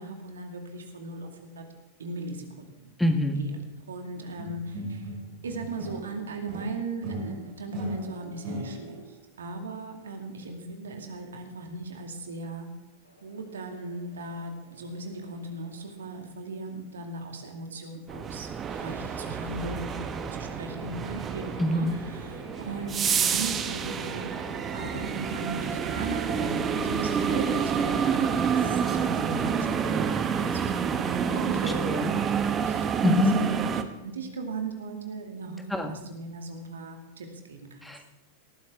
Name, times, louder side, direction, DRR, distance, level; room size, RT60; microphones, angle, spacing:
voice 1, 0.0-1.7 2.0-2.9 3.3-3.5 3.9-5.1 5.4-12.7 13.2-18.5 18.8-20.0 20.3-24.4 24.7-32.4 32.6-33.8 34.0-37.9, right 3 dB, 65° right, 4 dB, 2.4 m, -37 dB
voice 2, 3.0-3.4 21.6-21.9 31.6-32.2 33.0-33.3 35.7-36.0 37.8-38.1, left 1 dB, 5° left, 5 dB, 1.6 m, -25 dB
sound 1, 4.4-6.2 6.5-9.1, equal, 45° right, 4.8 m, -37 dB
sound 2, 13.0-16.2 18.5-28.9, left 1 dB, 80° left, 2.9 m, -47 dB
sound 3, 18.1-33.8, right 7 dB, 25° right, 1.2 m, -28 dB
19.0 x 14.0 x 3.7 m, 0.98 s
figure-of-eight pair, 90°, 0 cm